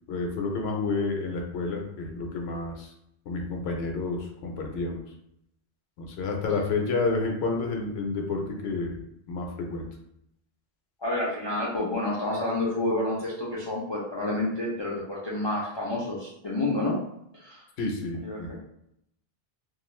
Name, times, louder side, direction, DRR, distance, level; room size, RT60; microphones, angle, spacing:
voice 1, 0.1-2.9 3.3-5.0 6.0-9.0 9.3-9.9 17.8-18.6, left 3 dB, 75° left, 1 dB, 0.9 m, -30 dB
voice 2, 11.0-17.0 17.3-17.6 18.2-18.6, left 2 dB, 40° left, -6 dB, 0.4 m, -29 dB
2.5 x 2.3 x 3.0 m, 0.78 s
omnidirectional pair, 1.1 m